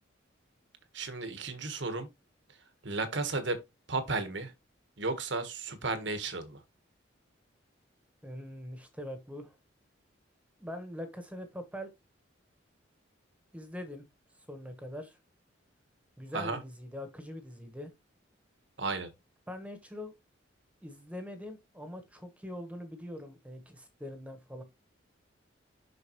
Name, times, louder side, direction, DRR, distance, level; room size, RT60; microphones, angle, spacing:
voice 1, 0.9-2.1 2.8-3.6 3.9-4.5 5.0-6.6 16.3-16.6 18.8-19.1, right 3 dB, 65° right, 1.4 m, -33 dB
voice 2, 8.2-9.6 10.6-11.9 13.5-14.1 14.5-15.2 16.2-17.9 19.5-20.1 20.8-24.6, left 1 dB, 5° right, 1.2 m, -43 dB
6.7 x 6.0 x 3.0 m
head